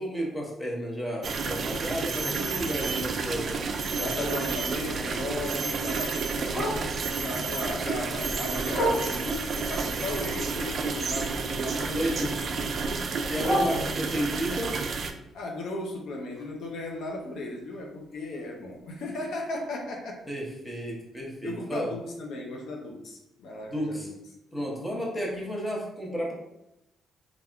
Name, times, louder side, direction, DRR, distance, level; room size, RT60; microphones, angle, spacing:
voice 1, 0.0-3.6 3.9-4.3 11.9-12.4 13.3-14.8 20.3-21.9 23.7-24.1 24.5-26.3, equal, 15° left, -3 dB, 0.9 m, -32 dB
sound 1, 1.2-15.1, right 4 dB, 55° right, 0.3 m, -30 dB
voice 2, 4.0-13.0 15.3-20.2 21.4-24.2, left 2 dB, 75° left, 0 dB, 0.5 m, -36 dB
Bark, 4.4-7.2 7.6-9.5 9.9-11.8 12.0-14.4 14.8-18.7 19.1-19.2 19.5-19.8 20.3-20.4 20.7-20.8 21.3-21.4, equal, 40° left, 1.5 m, -36 dB
3.4 x 2.4 x 2.2 m, 0.85 s
cardioid pair, 90°, 0 cm